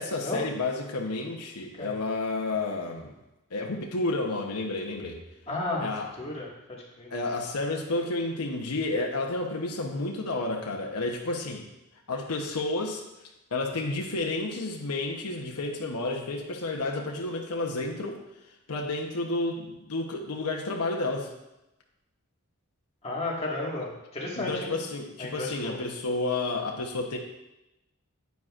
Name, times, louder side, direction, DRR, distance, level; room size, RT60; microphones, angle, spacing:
voice 1, 0.0-3.1 3.5-5.2 5.8-6.1 7.1-11.7 12.1-13.0 13.5-18.2 18.7-21.3 24.4-27.2, left 2 dB, 85° left, 1 dB, 1.0 m, -31 dB
voice 2, 5.5-5.9 6.2-7.1 23.0-24.7 25.2-25.8, left 2 dB, 30° left, -4 dB, 1.9 m, -33 dB
9.5 x 9.3 x 2.5 m, 0.94 s
head